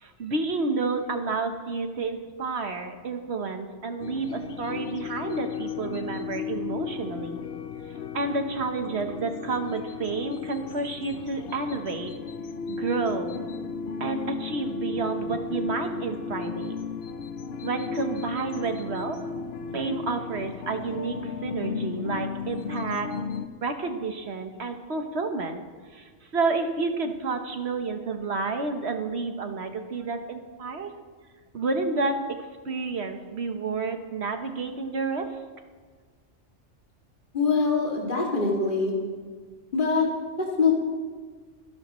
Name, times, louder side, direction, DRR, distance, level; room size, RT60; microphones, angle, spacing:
voice 1, 0.0-7.4 8.1-12.1 12.7-13.4 14.0-16.8 17.6-19.3 19.7-23.1 23.6-25.6 25.9-30.9 31.5-32.4 32.6-35.3, right 3 dB, 60° right, 6 dB, 1.4 m, -30 dB
sound 1, 4.0-23.5, left 5 dB, 60° left, 0.9 m, -35 dB
voice 2, 37.3-39.0 39.7-40.1 40.4-40.7, left 4 dB, 40° left, -3 dB, 2.6 m, -23 dB
24.5 x 11.5 x 3.1 m, 1.5 s
omnidirectional pair, 1.3 m